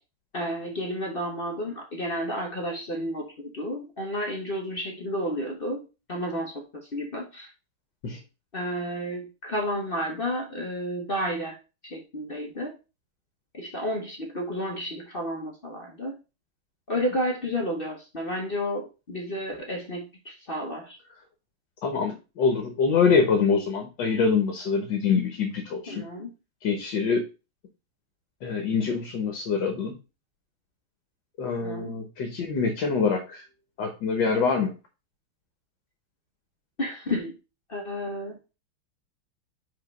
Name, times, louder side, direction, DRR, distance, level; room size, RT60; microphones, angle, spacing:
voice 1, 0.3-7.5 8.5-11.6 11.8-12.8 13.5-16.1 16.9-21.0 25.9-26.3 31.6-31.9 36.8-37.4 37.7-38.4, equal, 40° left, 1 dB, 0.9 m, -31 dB
voice 2, 21.8-26.0 26.6-27.2 28.4-30.0 31.4-33.4 33.8-34.7, left 5 dB, 65° left, 5 dB, 1.6 m, -25 dB
5.0 x 4.4 x 5.2 m, 0.30 s
omnidirectional pair, 2.3 m